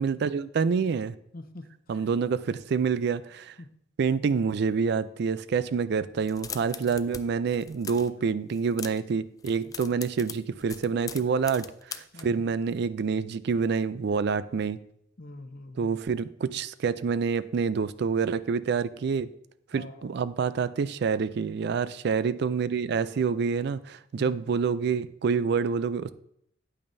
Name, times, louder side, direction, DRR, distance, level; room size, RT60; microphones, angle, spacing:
voice 1, 0.0-1.2 1.9-3.6 4.0-14.8 15.8-19.3 19.7-26.1, right 5 dB, 60° right, 16 dB, 0.4 m, -27 dB
voice 2, 1.3-2.1 3.6-3.7 9.6-10.0 12.1-12.5 15.2-16.0 19.7-20.1 24.1-24.4, left 2 dB, 50° left, 7 dB, 0.8 m, -45 dB
sound 1, 6.2-7.2 7.5-8.1 8.5-9.1 9.4-12.2, left 7 dB, 20° left, 0.4 m, -40 dB
8.8 x 8.7 x 2.6 m, 0.70 s
head